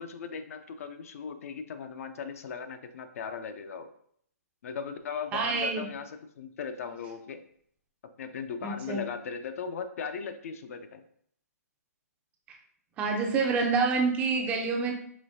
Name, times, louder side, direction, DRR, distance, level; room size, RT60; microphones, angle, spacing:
voice 1, 0.0-3.9 4.6-7.4 8.2-11.0, left 6 dB, 60° left, 8 dB, 0.5 m, -38 dB
voice 2, 5.3-5.9 8.6-9.0 13.0-14.9, right 4 dB, 15° right, 2 dB, 0.5 m, -27 dB
5.0 x 3.1 x 2.7 m, 0.64 s
hypercardioid pair, 155°, 9 cm